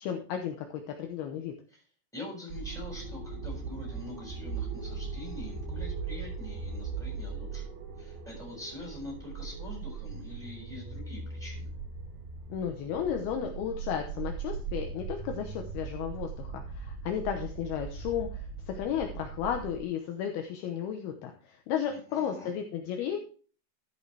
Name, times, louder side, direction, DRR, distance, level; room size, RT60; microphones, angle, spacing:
voice 1, 0.0-1.5 12.5-23.2, left 9 dB, 75° left, 4 dB, 2.7 m, -34 dB
voice 2, 2.1-7.7 8.0-11.7 21.9-22.5, left 2 dB, ahead, -2 dB, 6.2 m, -44 dB
sound 1, 2.5-19.8, right 5 dB, 85° right, 4.7 m, -39 dB
13.5 x 8.6 x 3.3 m, 0.42 s
omnidirectional pair, 5.0 m